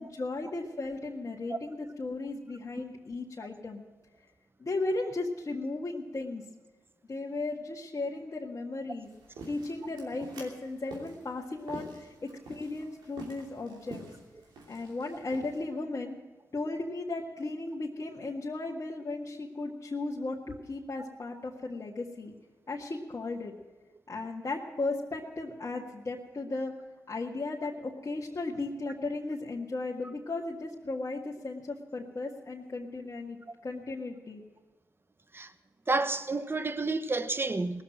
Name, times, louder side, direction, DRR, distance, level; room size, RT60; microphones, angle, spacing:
voice 1, 0.0-3.8 4.6-6.4 7.1-9.1 9.5-12.1 12.5-14.0 14.7-16.2 16.5-22.3 22.7-23.5 24.1-26.7 27.1-33.4 33.6-34.4, left 2 dB, 45° left, 1.8 m, -35 dB
sound 1, 9.0-15.6, right 2 dB, 90° right, 2.9 m, -48 dB
voice 2, 35.9-37.8, right 3 dB, 30° right, 1.2 m, -30 dB
18.0 x 7.3 x 9.0 m
supercardioid pair, 45°, 7 cm